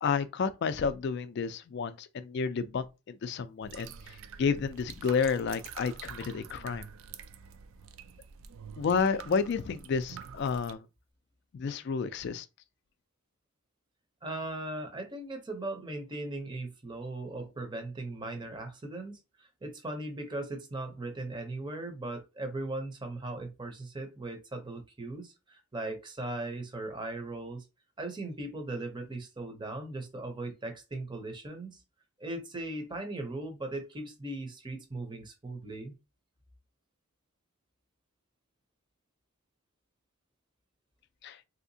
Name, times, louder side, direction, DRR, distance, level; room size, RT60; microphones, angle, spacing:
voice 1, 0.0-3.9 4.4-6.9 8.8-10.8 11.5-12.5 41.2-41.4, left 5 dB, 50° left, 0.3 m, -30 dB
sound 1, 3.6-10.7, right 7 dB, 65° right, 0.4 m, -47 dB
voice 2, 14.2-27.6 28.0-31.8 32.2-35.9, right 2 dB, 20° right, 0.6 m, -38 dB
3.4 x 2.7 x 2.7 m
head